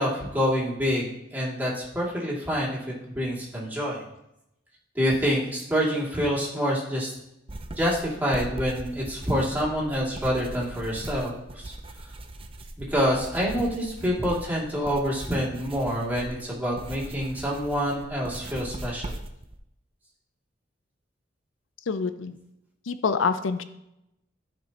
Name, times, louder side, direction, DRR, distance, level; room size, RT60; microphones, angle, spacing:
voice 1, 0.0-2.8 3.1-4.0 4.9-7.1 7.8-11.7 12.8-19.1, equal, 10° right, -6 dB, 2.4 m, -27 dB
sound 1, 7.5-19.6, right 1 dB, 30° right, 0.6 m, -40 dB
voice 2, 21.9-22.4 22.9-23.6, left 5 dB, 90° left, 11 dB, 0.5 m, -26 dB
14.0 x 5.2 x 2.9 m, 0.84 s
head